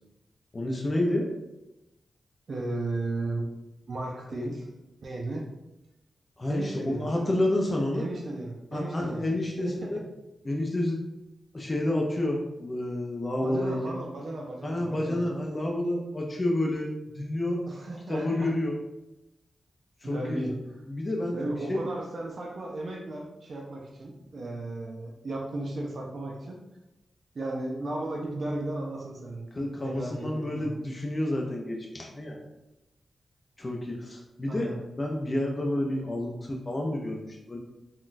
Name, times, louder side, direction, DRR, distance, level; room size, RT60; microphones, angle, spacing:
voice 1, 0.5-1.3 6.4-8.0 8.7-10.0 10.4-11.0 11.5-14.0 14.6-17.6 18.1-18.8 20.0-20.4 20.9-21.9 29.5-32.4 33.6-37.6, left 1 dB, 30° left, -1 dB, 0.4 m, -29 dB
voice 2, 2.5-3.5 3.9-4.6 5.0-5.4 6.5-7.2 7.9-9.3 9.6-9.7 13.4-15.2 17.7-18.5 20.0-20.5 21.3-26.6 27.4-29.5 29.8-30.7 34.5-34.8, right 2 dB, 60° right, -1 dB, 0.4 m, -35 dB
3.7 x 2.2 x 2.5 m, 0.95 s
wide cardioid pair, 90°, 0 cm